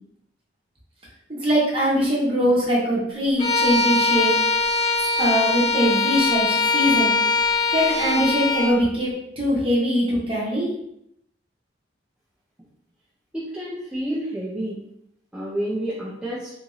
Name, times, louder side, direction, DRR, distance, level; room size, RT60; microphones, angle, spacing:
voice 1, 1.3-4.3 5.2-7.1 7.7-9.1 9.4-10.7, equal, 25° right, -5 dB, 1.0 m, -22 dB
Bowed string instrument, 3.4-8.8, left 4 dB, 25° left, 0.7 m, -21 dB
voice 2, 13.3-14.8 15.3-16.5, right 1 dB, 5° right, -8 dB, 0.5 m, -29 dB
2.9 x 2.6 x 3.9 m, 0.77 s
head